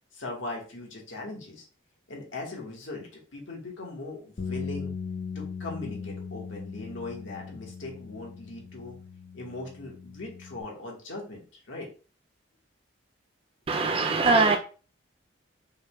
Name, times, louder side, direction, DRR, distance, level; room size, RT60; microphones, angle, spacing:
voice 1, 0.1-1.7 2.1-4.9 5.3-9.0 9.3-11.9, left 2 dB, 80° left, 1.6 m, -39 dB
sound 1, 4.4-10.6, left 5 dB, 50° left, 0.6 m, -39 dB
voice 2, 13.7-14.6, right 3 dB, 30° right, 0.3 m, -22 dB
5.6 x 3.4 x 2.3 m
head